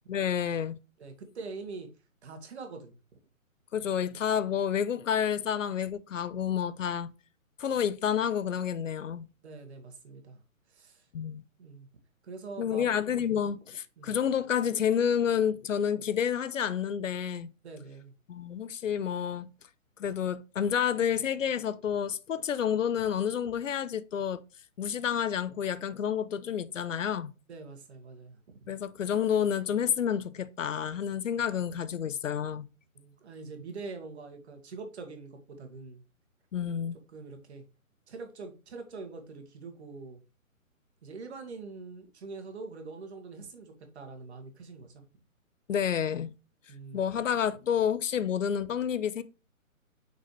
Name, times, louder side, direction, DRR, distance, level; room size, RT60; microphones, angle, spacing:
voice 1, 0.1-0.8 3.7-7.1 7.6-9.3 11.1-11.4 12.6-17.5 18.3-19.5 20.0-24.4 24.8-27.3 28.7-32.7 36.5-37.0 45.7-46.3 46.9-49.2, left 8 dB, 65° left, 0.6 m, -29 dB
voice 2, 1.0-1.9 2.2-3.0 9.4-10.4 10.7-11.1 11.6-11.9 12.2-12.9 13.1-13.4 14.0-14.2 17.6-18.1 27.5-28.6 32.9-36.0 37.1-37.6 38.1-40.2 41.0-45.0 46.7-47.1, right 4 dB, 50° right, 1.8 m, -44 dB
6.0 x 5.5 x 3.2 m
hypercardioid pair, 160°, 42 cm